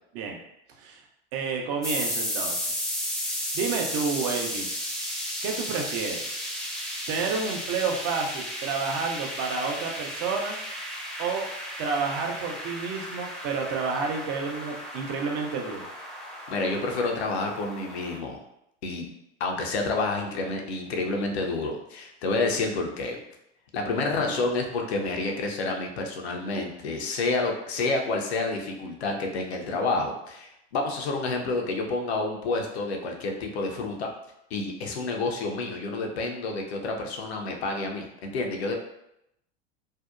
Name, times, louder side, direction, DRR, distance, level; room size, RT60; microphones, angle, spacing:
voice 1, 1.3-2.7 3.5-4.7 5.4-6.2 7.1-10.6 11.2-11.5 11.8-15.8 24.3-24.4, right 5 dB, 45° right, 2 dB, 0.6 m, -30 dB
sound 1, 1.8-18.2, equal, ahead, 0.4 m, -34 dB
voice 2, 16.5-18.4 18.8-19.1 19.4-23.2 23.7-34.1 34.5-38.8, left 3 dB, 80° left, 2 dB, 0.6 m, -29 dB
2.6 x 2.1 x 2.4 m, 0.81 s
hypercardioid pair, 85°, 32 cm